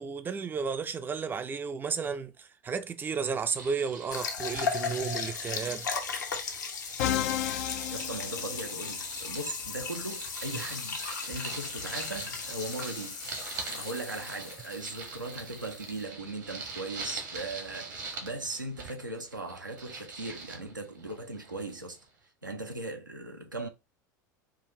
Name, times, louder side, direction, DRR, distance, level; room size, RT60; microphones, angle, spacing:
voice 1, 0.0-5.9 10.5-10.6, right 5 dB, 20° right, 0.5 m, -33 dB
sound 1, 3.4-7.4 7.7-22.1, right 4 dB, 70° right, 1.4 m, -44 dB
sound 2, 4.1-16.0, left 5 dB, 70° left, 0.9 m, -37 dB
Musical instrument, 7.0-9.1, left 11 dB, 55° left, 0.4 m, -32 dB
voice 2, 7.9-13.2 13.7-22.0 22.4-23.7, right 2 dB, 85° right, 0.7 m, -38 dB
4.9 x 2.4 x 3.1 m
figure-of-eight pair, 75°, 10 cm